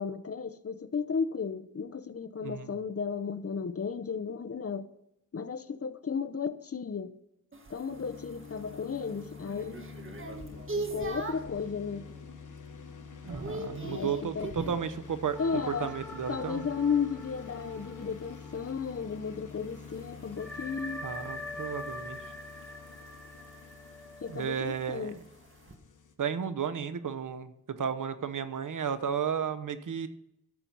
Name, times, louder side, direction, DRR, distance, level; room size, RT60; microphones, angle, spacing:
voice 1, 0.0-4.9 5.3-7.1 7.7-9.9 10.5-12.1 13.8-14.5 15.4-15.9 16.3-21.0 24.2-25.2, left 6 dB, 50° left, 0.8 m, -34 dB
voice 2, 2.4-2.8 13.2-15.4 15.7-16.6 21.0-22.2 24.3-25.2 26.2-30.1, right 7 dB, 90° right, 0.9 m, -33 dB
sound 1, 7.5-11.6 12.1-12.5 12.8-14.9 17.4-25.8, right 2 dB, 40° right, 1.6 m, -43 dB
sound 2, 7.9-26.1, left 5 dB, 85° left, 1.4 m, -48 dB
sound 3, 15.3-19.4 19.6-19.7 20.4-25.0, left 1 dB, 5° left, 1.5 m, -44 dB
13.0 x 7.5 x 5.4 m
wide cardioid pair, 85°, 30 cm